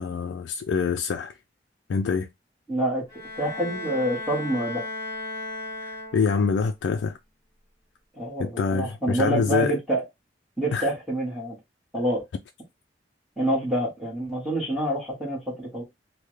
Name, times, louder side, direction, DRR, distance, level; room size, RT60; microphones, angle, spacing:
voice 1, 0.0-1.3 1.9-2.3 5.8-7.2 8.4-9.8 10.7-10.9, left 5 dB, 90° left, 0.3 m, -25 dB
voice 2, 2.7-3.0 3.4-4.8 8.2-10.0 10.6-11.6 11.9-12.2 13.4-15.8, right 1 dB, ahead, 1.3 m, -27 dB
Bowed string instrument, 3.1-6.6, left 2 dB, 20° right, 1.5 m, -36 dB
3.4 x 2.1 x 3.1 m
head